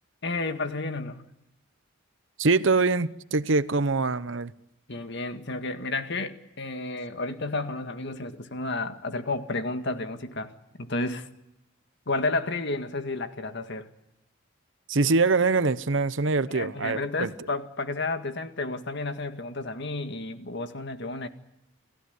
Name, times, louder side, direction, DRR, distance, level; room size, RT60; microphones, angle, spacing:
voice 1, 0.2-1.2 4.9-11.3 12.1-13.9 16.5-21.3, left 2 dB, 55° left, 1.9 m, -31 dB
voice 2, 2.4-4.5 14.9-17.3, right 3 dB, 65° right, 0.9 m, -24 dB
29.5 x 17.5 x 9.6 m
head